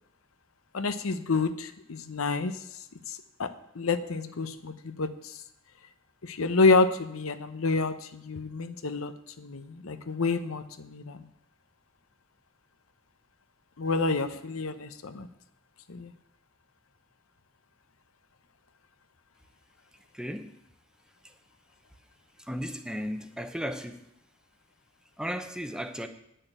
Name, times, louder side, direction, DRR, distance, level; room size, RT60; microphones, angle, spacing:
voice 1, 0.7-5.4 6.2-11.2 13.8-15.3 15.9-16.1, left 3 dB, 85° left, 11 dB, 0.9 m, -29 dB
voice 2, 20.1-20.5 22.5-24.0 25.2-26.1, equal, 5° right, 7 dB, 0.7 m, -35 dB
10.0 x 6.7 x 8.9 m, 0.76 s
head